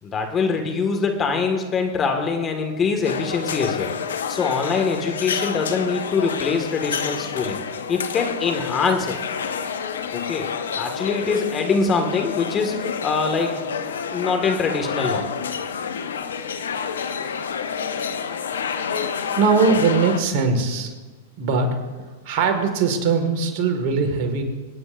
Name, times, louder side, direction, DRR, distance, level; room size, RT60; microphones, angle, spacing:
voice 1, 0.0-3.9 4.3-7.6 7.9-9.1 10.1-10.5 10.8-13.6 14.1-15.2, left 4 dB, 25° left, 4 dB, 1.9 m, -23 dB
sound 1, 3.0-20.2, left 6 dB, 75° left, 0.8 m, -29 dB
voice 2, 19.3-20.9 21.4-21.8 22.3-24.4, right 4 dB, 50° right, 5 dB, 2.0 m, -20 dB
25.5 x 9.2 x 2.6 m, 1.3 s
hypercardioid pair, 100°, 0 cm